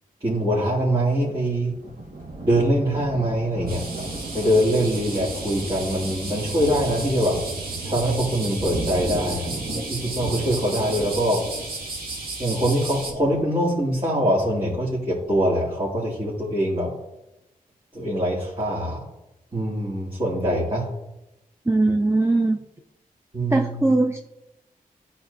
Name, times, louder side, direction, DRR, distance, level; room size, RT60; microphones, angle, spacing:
voice 1, 0.2-1.7 2.4-4.1 4.3-7.4 7.8-11.4 12.4-16.9 17.9-19.0 19.5-20.9 23.3-23.9, equal, 35° right, -8 dB, 2.4 m, -23 dB
Thunder, 1.1-13.4, right 2 dB, 65° right, 1.8 m, -35 dB
sound 1, 3.7-13.1, right 3 dB, 85° right, 1.5 m, -34 dB
voice 2, 21.7-22.6 23.5-24.2, right 2 dB, 15° right, 4 dB, 0.6 m, -20 dB
11.0 x 4.3 x 2.7 m, 0.91 s
cardioid pair, 50°, 15 cm